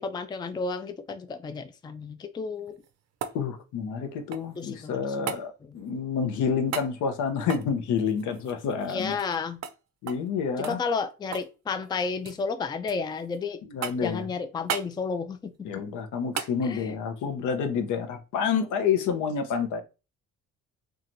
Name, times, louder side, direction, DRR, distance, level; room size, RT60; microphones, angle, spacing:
voice 1, 0.0-2.7 4.6-5.3 5.6-5.8 8.9-9.6 10.6-13.6 14.0-15.5 16.6-16.9, left 5 dB, 15° left, 0.3 m, -32 dB
sound 1, 2.6-4.7 5.3-5.5 6.7-6.9 7.4-9.4 9.6-9.8 10.1-10.3 10.6-11.6 11.8-12.4 12.9-13.4 13.8-14.2 14.7-14.9 16.3-16.6 18.9-19.0, right 8 dB, 60° right, 0.5 m, -36 dB
voice 2, 3.3-9.2 10.0-10.8 13.7-14.2 15.6-19.8, left 6 dB, 80° left, 0.7 m, -28 dB
2.9 x 2.3 x 2.5 m
cardioid pair, 90°, 30 cm